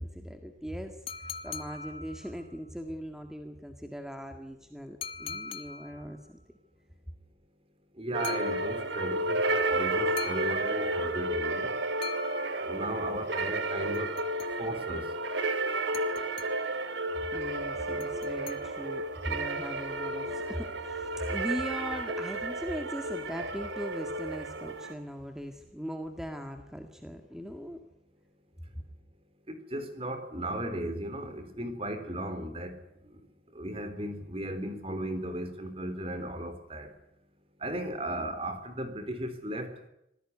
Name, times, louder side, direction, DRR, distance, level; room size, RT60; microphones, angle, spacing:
voice 1, 0.0-6.4 17.3-27.8, equal, 5° right, 5 dB, 1.8 m, -39 dB
sound 1, 1.1-2.5 5.0-6.2 8.2-9.1 10.2-11.2 12.0-13.0 13.9-14.9 15.9-16.9 18.0-19.1, left 5 dB, 30° left, 1.5 m, -42 dB
voice 2, 8.0-11.8 12.6-14.1 14.6-15.1 29.5-32.8 33.5-36.9 37.6-39.7, right 1 dB, 30° right, 9 dB, 4.0 m, -36 dB
sound 2, 8.1-24.9, right 2 dB, 80° right, 2.5 m, -32 dB
26.0 x 17.5 x 9.7 m, 0.82 s
head